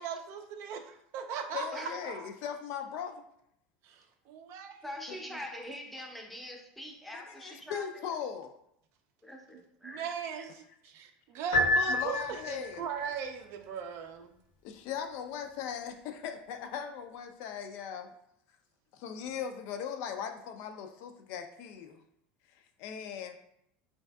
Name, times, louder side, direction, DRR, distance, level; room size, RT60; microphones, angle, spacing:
voice 1, 0.0-2.3 3.8-4.8 5.3-5.4 9.5-14.3, right 6 dB, 60° right, 5 dB, 0.4 m, -39 dB
voice 2, 1.5-3.2 5.1-5.2 7.1-8.5 11.9-12.8 14.6-18.1 18.9-22.0 22.8-23.4, left 8 dB, 65° left, 6 dB, 0.3 m, -39 dB
voice 3, 4.8-7.9 9.2-10.0, left 1 dB, ahead, 1 dB, 0.6 m, -43 dB
Piano, 11.5-12.8, left 1 dB, 85° left, 1.2 m, -28 dB
3.2 x 2.6 x 2.2 m, 0.75 s
supercardioid pair, 95°, 5 cm